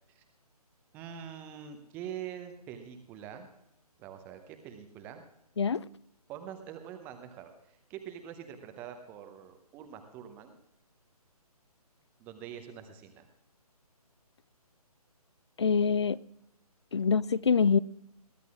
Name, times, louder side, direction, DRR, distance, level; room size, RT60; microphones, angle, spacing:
voice 1, 0.9-3.5 4.0-5.3 6.3-10.6 12.2-13.3, right 9 dB, 10° right, 0.7 m, -44 dB
voice 2, 15.6-16.2 16.9-17.8, left 6 dB, 45° left, 0.4 m, -25 dB
22.0 x 15.0 x 2.4 m
figure-of-eight pair, 140°, 20 cm